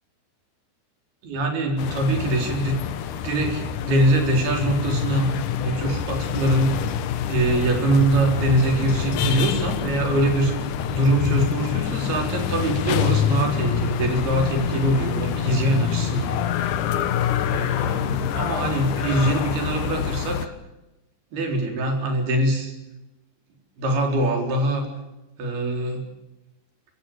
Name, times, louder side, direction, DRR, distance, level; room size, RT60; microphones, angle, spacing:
voice 1, 1.2-2.8 3.2-5.3 5.6-6.7 7.3-10.5 10.9-16.4 16.7-16.8 17.4-20.5 21.3-22.7 23.8-24.9 25.4-26.0, right 1 dB, 70° right, 3 dB, 5.9 m, -23 dB
sound 1, 1.8-20.5, left 9 dB, 70° left, 2.2 m, -26 dB
25.5 x 16.5 x 9.2 m, 0.99 s
omnidirectional pair, 4.6 m